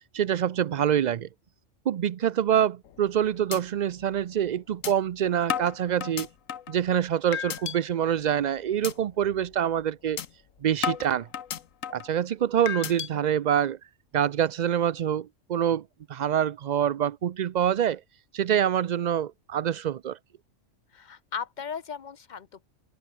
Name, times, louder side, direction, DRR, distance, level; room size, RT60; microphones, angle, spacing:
voice 1, 0.1-1.3 1.9-6.3 6.7-10.2 10.6-11.3 11.9-13.8 14.1-15.8 16.1-18.0 18.3-20.2, right 9 dB, 80° right, 0.4 m, -25 dB
sound 1, 2.8-3.1 3.5-3.6 4.0-4.1 4.8-4.9 5.5-6.8 7.3-7.8 8.2-8.4 8.8-8.9 9.3-9.5 10.2-10.3 10.8-12.1 12.7-13.1, left 9 dB, 85° left, 1.4 m, -32 dB
voice 2, 20.9-22.7, left 6 dB, 45° left, 0.7 m, -37 dB
omnidirectional pair, 1.3 m